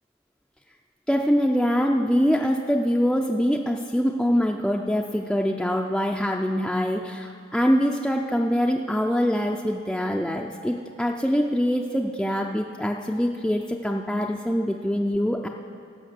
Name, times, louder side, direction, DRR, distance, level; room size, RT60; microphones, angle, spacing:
voice 1, 1.1-15.5, equal, 5° left, 0 dB, 0.3 m, -24 dB
16.0 x 6.1 x 6.6 m, 2.6 s
head